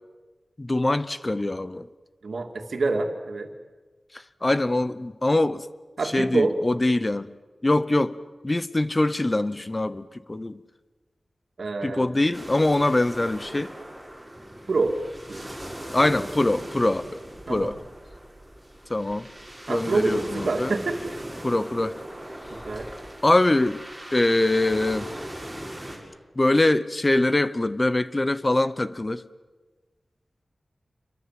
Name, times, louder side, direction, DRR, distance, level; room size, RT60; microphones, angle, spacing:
voice 1, 0.6-1.9 4.1-5.7 6.1-7.3 7.6-8.2 8.4-10.6 11.8-13.7 15.9-17.2 17.5-17.7 18.9-19.3 19.7-20.7 21.4-21.9 23.2-23.8 24.1-25.1 26.4-29.2, left 2 dB, 25° left, 0.8 m, -23 dB
voice 2, 2.2-3.5 6.0-6.6 11.6-12.1 14.7-15.0 15.3-15.6 17.5-17.8 19.7-21.0 21.3-21.4 22.6-22.9, right 3 dB, 75° right, 2.7 m, -26 dB
sound 1, 12.3-26.0, right 1 dB, 5° right, 6.4 m, -39 dB
27.5 x 23.5 x 7.7 m
wide cardioid pair, 105°, 0 cm